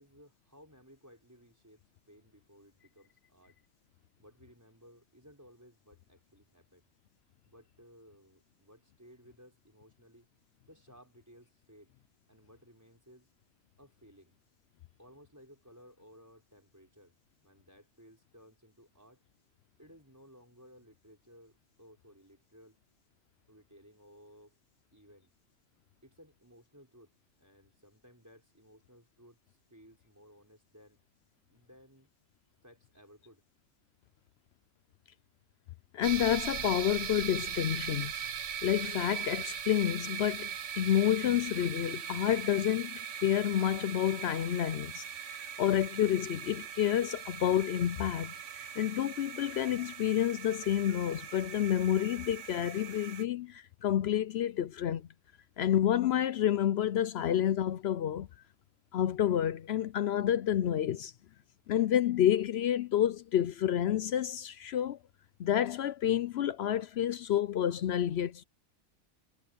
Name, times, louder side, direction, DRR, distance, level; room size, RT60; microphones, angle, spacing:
voice 1, 0.0-1.8 2.1-3.6 4.2-6.9 7.4-10.3 10.7-11.9 12.3-13.3 13.8-14.4 15.0-17.1 17.4-19.2 19.8-22.8 23.5-24.5 24.9-25.3 26.0-27.1 27.4-31.0 31.5-32.1 32.6-33.4, equal, 10° right, 5.5 m, -59 dB
voice 2, 35.9-38.1 38.6-40.5 40.8-45.0 45.6-48.3 48.8-55.0 55.6-58.3 58.9-61.1 61.7-65.0 65.4-68.4, left 10 dB, 65° left, 0.7 m, -29 dB
sound 1, 36.0-53.2, right 8 dB, 65° right, 1.3 m, -40 dB
omnidirectional pair, 1.4 m